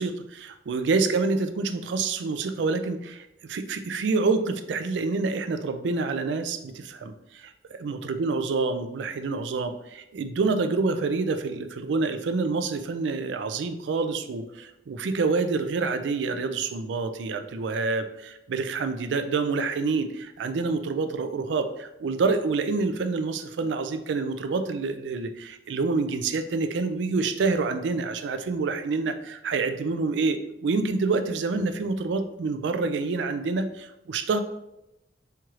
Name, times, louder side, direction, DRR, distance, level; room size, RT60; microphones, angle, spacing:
voice 1, 0.0-7.5 7.8-34.4, right 4 dB, 80° right, 9 dB, 0.4 m, -27 dB
4.4 x 2.4 x 3.0 m, 0.88 s
head